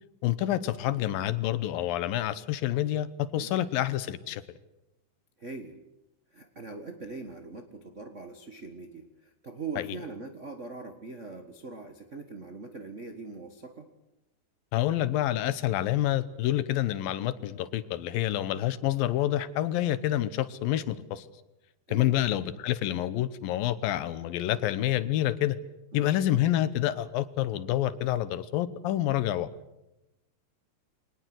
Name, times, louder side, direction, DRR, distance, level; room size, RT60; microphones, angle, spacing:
voice 1, 0.2-4.4 9.8-9.9 14.7-21.3 21.9-25.6 25.9-29.5, left 13 dB, 80° left, 15 dB, 2.7 m, -28 dB
voice 2, 5.4-5.8 6.3-13.9 21.9-22.2 25.9-26.1, right 3 dB, 60° right, 5 dB, 0.7 m, -42 dB
24.0 x 19.5 x 7.9 m, 0.93 s
omnidirectional pair, 4.2 m